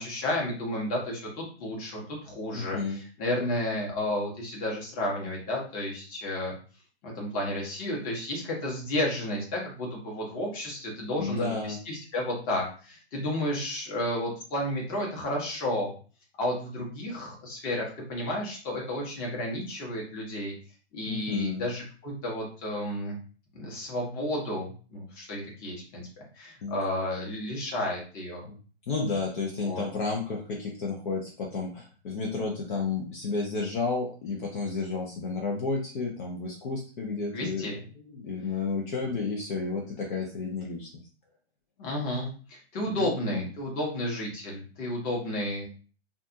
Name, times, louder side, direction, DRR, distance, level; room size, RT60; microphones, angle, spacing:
voice 1, 0.0-6.5 7.0-11.5 11.9-15.9 16.4-20.5 20.9-23.2 23.5-26.0 26.3-28.4 29.6-29.8 37.3-37.8 41.8-45.7, left 1 dB, 25° left, -2 dB, 1.0 m, -32 dB
voice 2, 2.5-3.0 11.2-11.8 21.1-21.7 26.6-26.8 28.5-28.6 28.9-40.9 42.9-43.5, left 4 dB, 50° left, -1 dB, 0.7 m, -32 dB
2.5 x 2.4 x 2.6 m, 0.39 s
hypercardioid pair, 135°, 33 cm